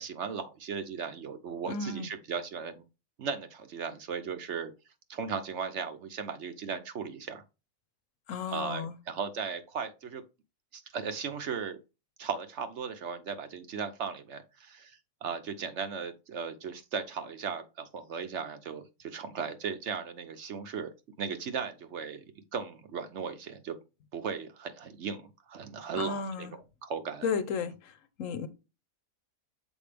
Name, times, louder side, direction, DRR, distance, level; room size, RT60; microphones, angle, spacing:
voice 1, 0.0-2.8 3.2-4.7 5.1-7.4 8.5-10.2 10.7-11.8 12.2-20.9 21.2-22.2 22.5-23.8 24.1-26.5 26.8-27.3, right 6 dB, 60° right, 0.9 m, -37 dB
voice 2, 1.7-2.1 8.3-8.9 26.0-26.5 27.2-27.9 28.2-28.5, left 5 dB, 65° left, 1.1 m, -33 dB
7.1 x 4.6 x 3.3 m
omnidirectional pair, 1.5 m